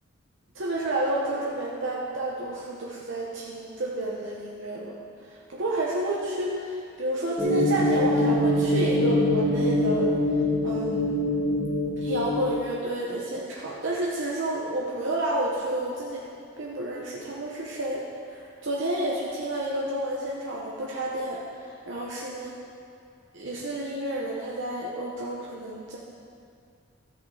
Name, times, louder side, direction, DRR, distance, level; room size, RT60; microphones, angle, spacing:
voice 1, 0.5-4.9 5.2-10.1 10.6-11.2 12.0-16.3 16.6-22.5 23.3-26.0, right 1 dB, 60° right, -4 dB, 1.0 m, -30 dB
sound 1, 7.4-12.5, left 1 dB, 10° right, 1.9 m, -24 dB
14.0 x 6.4 x 4.9 m, 2.4 s
head